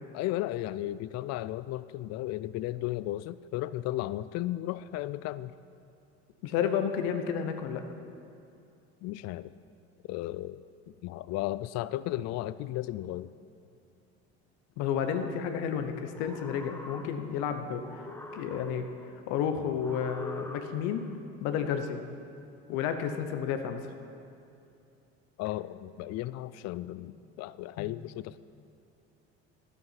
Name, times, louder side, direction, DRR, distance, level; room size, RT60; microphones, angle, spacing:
voice 1, 0.1-5.5 9.0-9.5 10.1-13.3 25.4-28.4, left 15 dB, 50° left, 17 dB, 0.4 m, -35 dB
voice 2, 6.4-7.9 14.8-17.8 18.3-18.8 19.3-21.0 21.4-22.0 22.7-23.8 27.8-27.9, left 8 dB, 70° left, 7 dB, 1.0 m, -31 dB
sound 1, 16.1-17.5 17.8-19.1 19.8-21.1, left 2 dB, 5° left, 1.1 m, -43 dB
10.5 x 8.1 x 5.7 m, 2.6 s
supercardioid pair, 80°, 33 cm